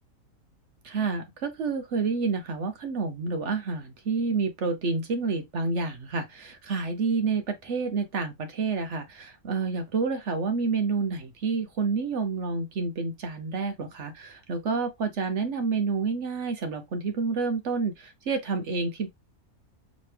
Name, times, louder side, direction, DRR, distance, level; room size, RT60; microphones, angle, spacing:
voice 1, 0.8-19.1, right 4 dB, 60° right, 1.0 m, -29 dB
5.0 x 3.0 x 3.3 m
omnidirectional pair, 1.5 m